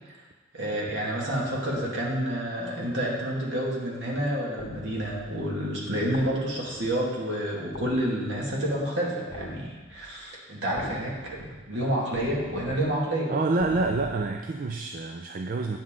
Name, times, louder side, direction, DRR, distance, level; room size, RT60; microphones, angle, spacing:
voice 1, 0.5-13.3, right 1 dB, 65° right, -3 dB, 2.0 m, -29 dB
sound 1, 4.6-5.3 6.1-6.9 7.7-8.6 9.3-10.1 10.8-11.5 12.1-12.8 13.6-14.2, left 2 dB, 85° left, 1.1 m, -42 dB
voice 2, 13.3-15.8, right 3 dB, 45° right, 4 dB, 0.4 m, -27 dB
9.2 x 7.6 x 3.7 m, 1.3 s
head